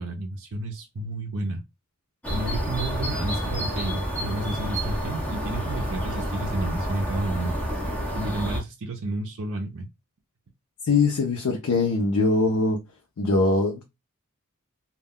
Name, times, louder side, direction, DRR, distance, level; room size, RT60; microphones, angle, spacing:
voice 1, 0.0-1.6 2.3-9.9, right 2 dB, 60° right, 0.5 m, -31 dB
sound 1, 2.2-8.6, equal, 5° left, 0.8 m, -29 dB
voice 2, 10.8-12.8 13.2-13.8, left 3 dB, 80° left, 0.5 m, -22 dB
2.2 x 2.1 x 3.4 m
head